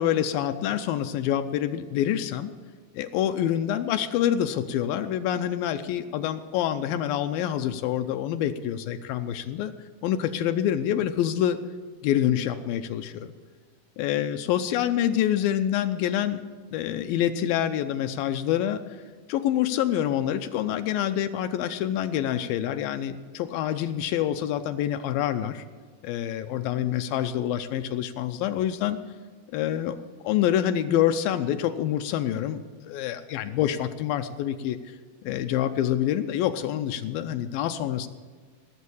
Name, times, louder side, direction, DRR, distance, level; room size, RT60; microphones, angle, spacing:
voice 1, 0.0-2.5 2.9-9.7 10.0-11.6 12.0-13.3 14.0-16.4 16.7-18.8 19.3-25.6 26.0-29.0 29.5-30.0 30.2-34.8 35.2-38.1, left 11 dB, 80° left, 9 dB, 2.3 m, -26 dB
17.5 x 7.4 x 7.0 m, 1.5 s
omnidirectional pair, 4.2 m